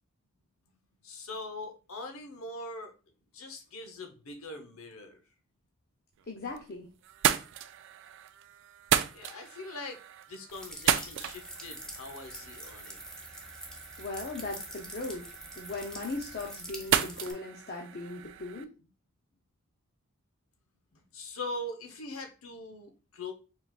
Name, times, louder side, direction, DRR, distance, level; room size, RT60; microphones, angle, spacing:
voice 1, 1.0-2.9 3.3-5.2 9.1-10.0 10.3-13.0 21.1-23.3, left 2 dB, 85° left, 6 dB, 0.9 m, -42 dB
sound 1, 6.2-6.7 7.0-18.6, right 10 dB, 60° right, 0.3 m, -34 dB
voice 2, 6.3-6.9 14.0-15.2 15.6-18.7, left 2 dB, 45° left, 0 dB, 0.6 m, -38 dB
sound 2, 10.5-17.3, equal, 5° left, 0.7 m, -45 dB
4.7 x 3.9 x 2.3 m, 0.33 s
head